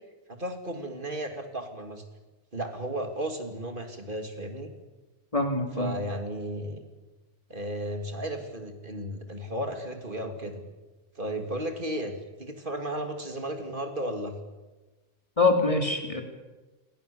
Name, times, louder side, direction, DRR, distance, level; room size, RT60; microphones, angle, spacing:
voice 1, 0.3-2.0 2.5-4.7 5.7-6.8 7.5-10.6 11.1-14.4, right 1 dB, 45° right, 5 dB, 3.0 m, -34 dB
voice 2, 5.3-5.9 15.4-16.2, left 3 dB, 25° left, 4 dB, 3.4 m, -24 dB
28.0 x 22.5 x 7.2 m, 1.2 s
omnidirectional pair, 1.2 m